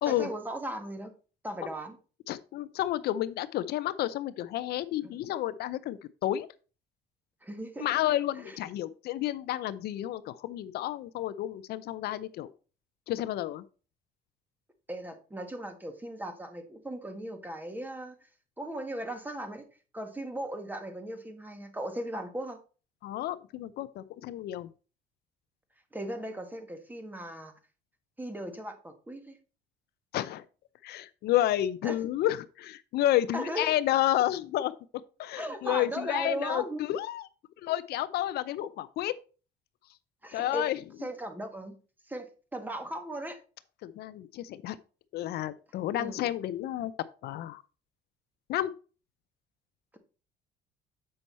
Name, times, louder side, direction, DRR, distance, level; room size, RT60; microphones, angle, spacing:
voice 1, 0.1-1.1 1.4-2.0 5.0-5.2 7.4-7.9 8.3-8.6 14.9-18.2 18.6-19.6 19.9-22.6 25.9-27.5 28.2-29.4 31.8-32.0 33.3-33.7 35.4-36.8 40.2-40.7 41.0-41.7 42.1-43.4 46.0-46.2, right 1 dB, 10° right, 1.6 m, -37 dB
voice 2, 2.3-6.5 7.8-12.5 13.1-13.6 23.0-24.7 30.1-30.4 30.8-34.7 35.2-37.2 37.6-39.2 40.3-40.8 43.8-44.8 45.1-46.9 47.2-47.6 48.5-48.7, left 13 dB, 70° left, 0.5 m, -30 dB
7.6 x 5.4 x 4.1 m
cardioid pair, 110°, 17 cm